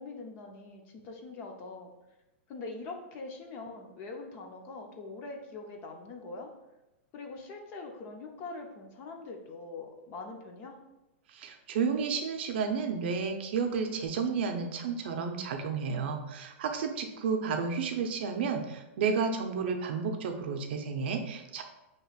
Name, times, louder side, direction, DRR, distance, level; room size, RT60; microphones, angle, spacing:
voice 1, 0.0-1.9 2.5-6.5 7.1-10.8, left 3 dB, 25° left, 3 dB, 0.5 m, -43 dB
voice 2, 11.3-21.6, right 5 dB, 55° right, 5 dB, 0.6 m, -31 dB
6.0 x 2.9 x 2.4 m, 0.96 s
supercardioid pair, 170°, 7 cm